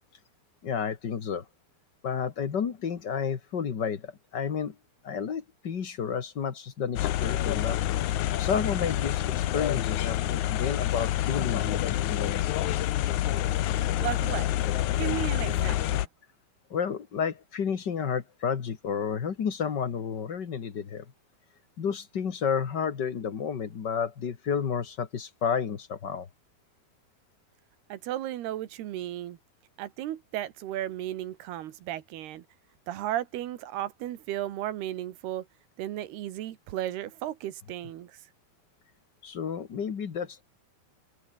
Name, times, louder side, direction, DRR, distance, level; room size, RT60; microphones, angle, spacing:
voice 1, 0.6-1.4 2.0-4.7 5.0-7.8 8.4-12.4 16.7-21.0 21.8-26.3 39.2-40.4, left 7 dB, 50° left, 1.3 m, -31 dB
sound 1, 7.0-16.1, left 14 dB, 70° left, 2.0 m, -27 dB
voice 2, 14.0-14.5 15.0-16.1 27.9-29.4 29.8-32.5 32.9-35.5 35.8-38.1, right 13 dB, 85° right, 3.5 m, -34 dB
omnidirectional pair, 4.5 m